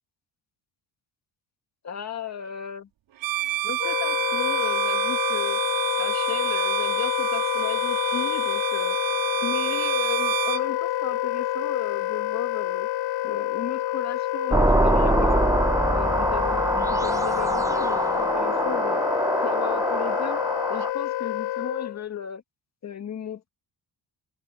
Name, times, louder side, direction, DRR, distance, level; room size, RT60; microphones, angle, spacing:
voice 1, 1.8-2.9 3.6-5.6 6.0-9.0 9.4-12.9 13.2-15.5 15.9-19.0 19.4-20.4 20.7-22.4 22.8-23.5, left 7 dB, 35° left, 2.1 m, -35 dB
Bowed string instrument, 3.2-10.7, right 15 dB, 90° right, 3.4 m, -29 dB
Wind instrument woodwind instrument, 3.8-22.0, left 14 dB, 60° left, 0.5 m, -28 dB
sound 1, 14.5-20.9, right 2 dB, 5° right, 0.9 m, -24 dB
cardioid pair, 150°, 44 cm